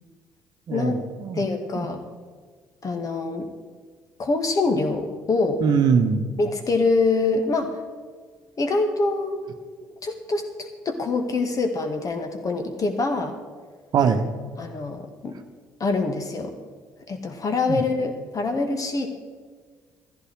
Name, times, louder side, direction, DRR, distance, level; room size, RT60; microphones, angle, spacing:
voice 1, 0.7-1.4 1.7-1.9 5.6-6.2 13.9-14.3 17.7-17.8, right 6 dB, 50° right, 7 dB, 1.2 m, -22 dB
voice 2, 1.3-2.0 2.8-3.5 4.2-5.6 6.4-7.8 8.6-9.4 10.0-13.4 14.6-15.4 15.8-16.5 17.1-19.1, left 3 dB, 40° left, 6 dB, 2.1 m, -25 dB
15.5 x 14.5 x 4.8 m, 1.5 s
figure-of-eight pair, 45°, 9 cm